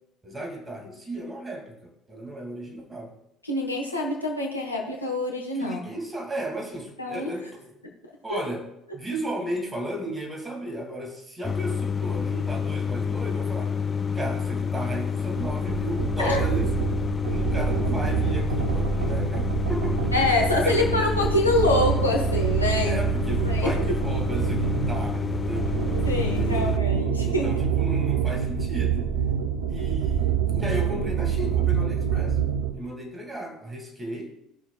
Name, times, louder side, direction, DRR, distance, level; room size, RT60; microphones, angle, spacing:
voice 1, 0.2-3.1 5.5-7.7 8.2-8.7 8.9-13.8 14.1-16.7 17.3-20.0 20.6-21.1 22.8-25.7 26.3-29.1 29.7-32.4 32.7-34.4, right 1 dB, 15° right, 1 dB, 2.3 m, -34 dB
voice 2, 3.4-5.8 7.0-7.4 8.3-8.4 16.2-16.4 20.1-23.0 23.4-24.0 26.0-27.5, left 2 dB, 85° left, 0 dB, 1.2 m, -25 dB
sound 1, 11.4-26.8, left 6 dB, 25° left, 0.4 m, -29 dB
sound 2, 15.4-32.8, right 7 dB, 70° right, 0.8 m, -26 dB
18.0 x 6.1 x 2.3 m, 0.81 s
figure-of-eight pair, 60°, 0 cm